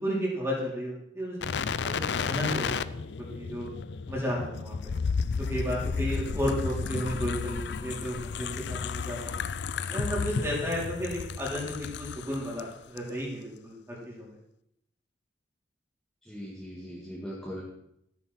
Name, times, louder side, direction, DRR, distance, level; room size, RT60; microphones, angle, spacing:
voice 1, 0.0-3.7 4.1-4.9 5.4-9.4 9.9-14.3, equal, 15° right, -4 dB, 3.8 m, -33 dB
sound 1, 1.4-12.6 13.0-13.1, left 5 dB, 65° left, 0.4 m, -32 dB
voice 2, 16.2-17.6, equal, 5° left, -7 dB, 2.0 m, -40 dB
13.5 x 9.8 x 4.3 m, 0.77 s
head